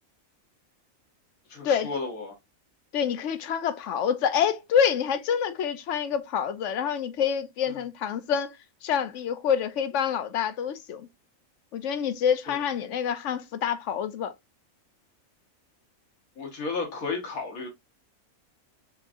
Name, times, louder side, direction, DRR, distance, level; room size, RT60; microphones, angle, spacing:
voice 1, 1.5-2.3 12.5-12.6 16.4-17.7, left 4 dB, 85° left, 1.7 m, -33 dB
voice 2, 2.9-8.6 8.8-11.1 11.7-14.3, left 8 dB, 65° left, 0.9 m, -27 dB
5.5 x 3.6 x 2.5 m
omnidirectional pair, 1.4 m